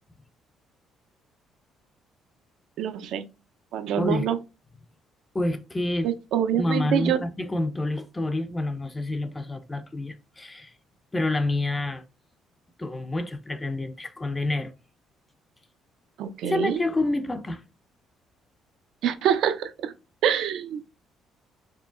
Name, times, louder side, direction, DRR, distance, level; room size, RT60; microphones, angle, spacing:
voice 1, 2.8-3.2 3.7-4.4 6.0-7.2 16.2-16.8 19.0-19.9 20.2-20.9, right 9 dB, 65° right, 0.4 m, -25 dB
voice 2, 4.0-4.3 5.3-6.1 6.6-10.7 11.1-12.0 12.8-14.7 16.4-17.6, left 2 dB, 15° left, 0.4 m, -28 dB
4.5 x 3.0 x 2.4 m
cardioid pair, 160°, 0 cm